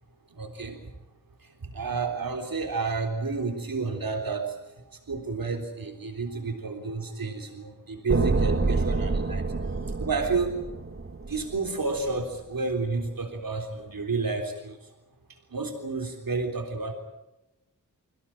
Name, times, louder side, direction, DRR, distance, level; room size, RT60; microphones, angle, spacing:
voice 1, 0.4-0.9 1.6-4.6 5.1-9.4 10.0-10.6 11.2-14.8 15.5-16.9, right 4 dB, 80° right, 3 dB, 3.6 m, -30 dB
sound 1, 8.1-12.2, right 3 dB, 40° right, 1.7 m, -27 dB
27.5 x 17.0 x 8.9 m, 0.97 s
wide cardioid pair, 65°, 34 cm